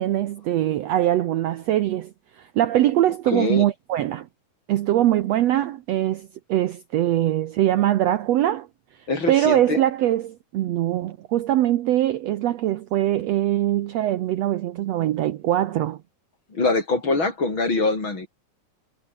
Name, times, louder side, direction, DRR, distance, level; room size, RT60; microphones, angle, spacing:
voice 1, 0.0-4.3 4.7-8.7 9.3-16.0, right 13 dB, 70° right, 1.8 m, -22 dB
voice 2, 3.3-3.7 9.1-9.9 16.5-18.3, left 3 dB, 35° left, 5.6 m, -23 dB
omnidirectional pair, 3.6 m